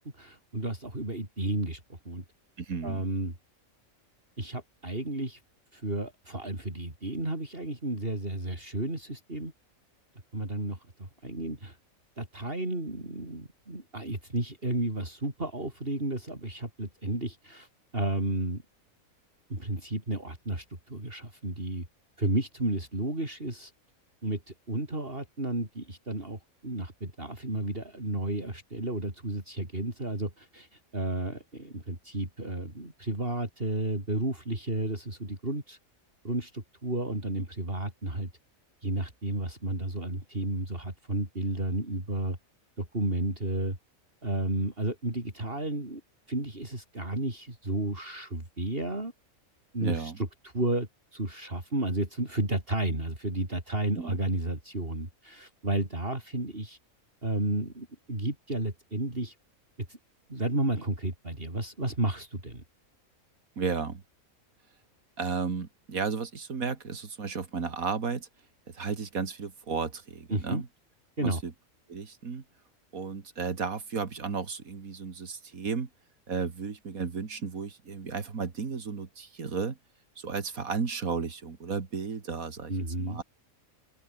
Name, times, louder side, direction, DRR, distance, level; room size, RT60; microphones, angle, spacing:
voice 1, 0.0-2.2 2.8-3.3 4.4-5.4 5.7-9.5 10.3-11.8 12.2-17.7 17.9-18.6 19.5-21.9 22.2-23.7 24.2-35.8 36.2-38.3 38.8-42.4 42.8-43.8 44.2-46.0 46.3-49.1 49.7-56.8 57.2-59.4 59.9-60.0 60.3-62.6 70.3-70.6 71.2-71.4 82.7-83.2, right 2 dB, 40° right, 5.5 m, -32 dB
voice 2, 2.6-3.0 49.8-50.2 54.0-54.2 63.6-64.0 65.2-68.3 68.7-70.7 71.2-71.5 71.9-72.4 72.9-75.9 76.3-79.8 80.2-82.7 83.0-83.2, right 5 dB, 75° right, 2.6 m, -33 dB
open air
omnidirectional pair, 1.5 m